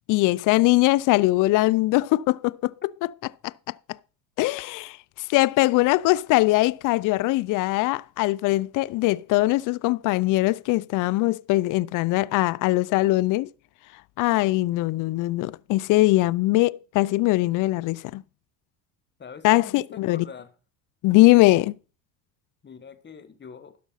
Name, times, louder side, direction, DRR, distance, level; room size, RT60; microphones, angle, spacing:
voice 1, 0.1-2.7 3.4-3.5 4.4-5.0 5.3-13.5 14.2-18.2 19.4-20.2 21.0-21.8, left 19 dB, 50° left, 0.5 m, -21 dB
voice 2, 19.2-20.5 22.6-23.8, left 6 dB, 25° left, 1.4 m, -43 dB
12.5 x 5.1 x 5.6 m
supercardioid pair, 90°, 43 cm